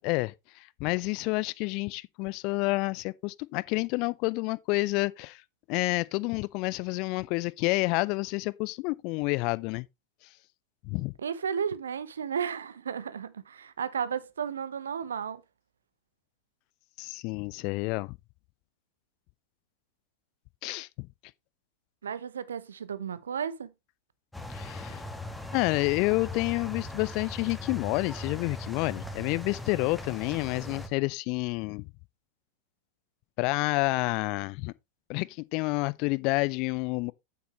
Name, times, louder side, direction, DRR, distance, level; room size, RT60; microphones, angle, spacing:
voice 1, 0.0-5.4 5.7-9.9 10.8-11.1 17.0-18.2 20.6-21.1 24.5-25.0 25.5-31.9 33.4-34.7 35.1-37.1, left 25 dB, 45° left, 0.5 m, -29 dB
voice 2, 11.2-15.4 22.0-23.7, right 7 dB, 70° right, 0.9 m, -33 dB
sound 1, 24.3-30.9, left 2 dB, 5° left, 1.6 m, -39 dB
9.4 x 8.2 x 3.1 m
figure-of-eight pair, 90°, 0 cm